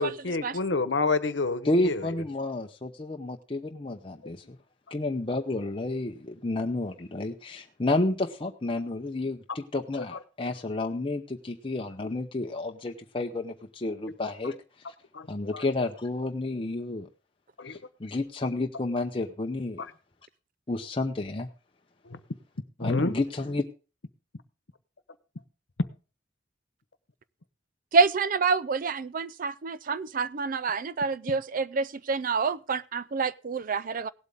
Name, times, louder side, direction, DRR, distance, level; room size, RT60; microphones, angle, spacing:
voice 1, 0.0-2.1 4.2-4.3 15.1-15.3 15.5-15.6 17.6-17.8 19.8-19.9 22.1-22.2 22.8-23.1, left 3 dB, 80° left, 1.0 m, -28 dB
voice 2, 1.6-4.6 4.9-14.5 15.3-17.1 18.0-19.8 20.7-21.5 22.8-23.6, left 2 dB, 30° left, 0.7 m, -30 dB
voice 3, 27.9-34.1, right 4 dB, 50° right, 0.5 m, -27 dB
17.5 x 8.1 x 3.6 m
head